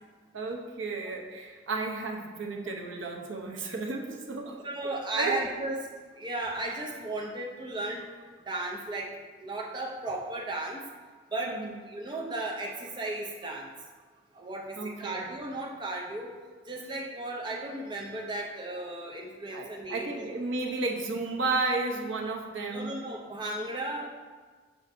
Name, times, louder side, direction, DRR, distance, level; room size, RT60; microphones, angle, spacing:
voice 1, 0.3-4.6 5.2-5.4 11.5-11.7 14.8-15.2 19.5-23.0, right 3 dB, 75° right, 0 dB, 0.8 m, -33 dB
voice 2, 4.6-5.8 6.1-8.1 8.5-9.1 9.4-10.8 11.3-13.7 14.3-16.3 16.7-20.3 22.7-24.1, right 2 dB, 25° right, -1 dB, 0.5 m, -35 dB
6.3 x 5.9 x 2.6 m, 1.5 s
head